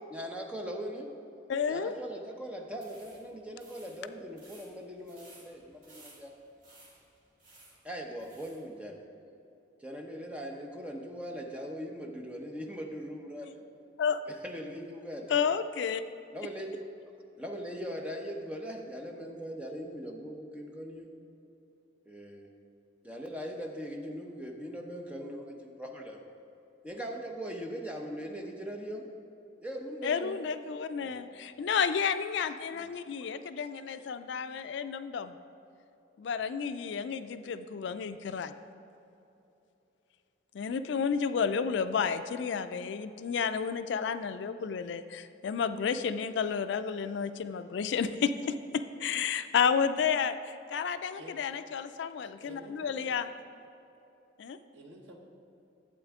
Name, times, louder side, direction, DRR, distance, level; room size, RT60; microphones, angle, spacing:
voice 1, 0.1-1.1 1.7-6.3 7.8-9.0 9.8-13.6 14.4-15.4 16.3-16.8 17.4-21.1 22.1-22.5 23.0-26.2 26.8-29.1 29.6-30.4 31.0-31.2 32.7-32.9, equal, 5° right, 1 dB, 0.8 m, -40 dB
voice 2, 1.5-1.9 14.0-14.2 15.3-16.0 30.0-35.4 36.2-38.5 40.5-53.3 54.4-54.6, left 6 dB, 70° left, 11 dB, 0.3 m, -31 dB
sound 1, 2.7-8.6, right 2 dB, 45° right, 2.5 m, -58 dB
voice 3, 51.2-51.6 52.2-53.0 54.7-55.2, right 2 dB, 85° right, 0 dB, 1.2 m, -50 dB
12.0 x 8.1 x 3.6 m, 2.9 s
head